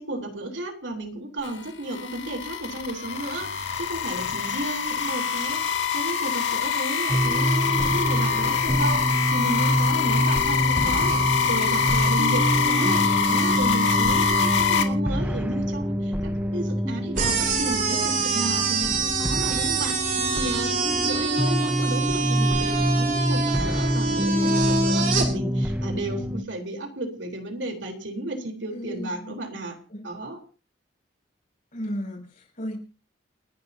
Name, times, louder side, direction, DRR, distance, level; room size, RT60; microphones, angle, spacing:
voice 1, 0.0-20.8 21.0-29.8 30.0-30.4, right 1 dB, 70° right, 3 dB, 4.0 m, -33 dB
sound 1, 1.4-14.8, left 6 dB, 70° left, 2.4 m, -25 dB
sound 2, 7.1-26.4, equal, 10° right, 1.0 m, -26 dB
sound 3, 17.2-25.3, right 4 dB, 45° right, 5.4 m, -26 dB
voice 2, 28.7-29.3 29.9-30.0 31.7-32.8, equal, 45° left, 0 dB, 7.3 m, -34 dB
29.5 x 11.5 x 2.8 m, 0.34 s
head